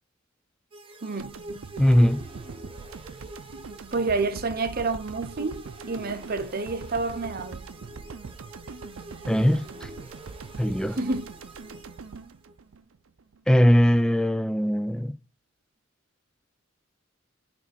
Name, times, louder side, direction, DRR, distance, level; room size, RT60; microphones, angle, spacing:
sound 1, 0.7-12.5, right 2 dB, 25° right, 1.2 m, -45 dB
voice 1, 1.0-1.3 3.9-7.7 11.0-11.3, right 3 dB, 50° right, 0.7 m, -29 dB
sound 2, 1.2-13.4, right 4 dB, 80° right, 0.6 m, -42 dB
voice 2, 1.8-2.3 9.3-9.9 10.6-11.0 13.5-15.2, equal, 5° left, 0.4 m, -20 dB
9.3 x 3.4 x 5.9 m
head